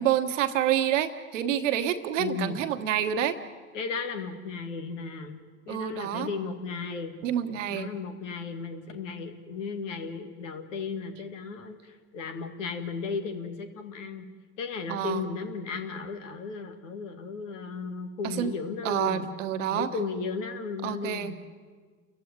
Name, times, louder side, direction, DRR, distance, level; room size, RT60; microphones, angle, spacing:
voice 1, 0.0-3.4 5.7-6.3 7.2-7.9 14.9-15.3 18.2-18.5 18.8-19.9 20.8-21.3, right 10 dB, 75° right, 10 dB, 1.3 m, -28 dB
voice 2, 2.2-2.6 3.7-5.4 5.7-7.2 7.7-14.3 14.6-19.3 19.7-21.4, left 5 dB, 80° left, 6 dB, 2.0 m, -35 dB
29.5 x 15.0 x 9.6 m, 1.5 s
figure-of-eight pair, 50°, 37 cm